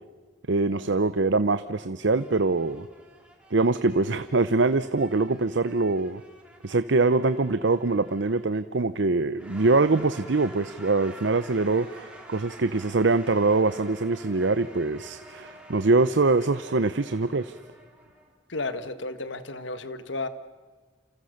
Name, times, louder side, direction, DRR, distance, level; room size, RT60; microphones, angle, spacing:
voice 1, 0.5-2.9 3.5-6.2 6.6-17.6, right 3 dB, 70° right, 13 dB, 0.7 m, -23 dB
sound 1, 0.6-1.4 2.1-8.7 9.3-18.3, right 1 dB, 5° right, 3.7 m, -49 dB
voice 2, 18.5-20.3, left 3 dB, 70° left, 12 dB, 1.6 m, -33 dB
28.5 x 28.0 x 6.6 m, 1.5 s
head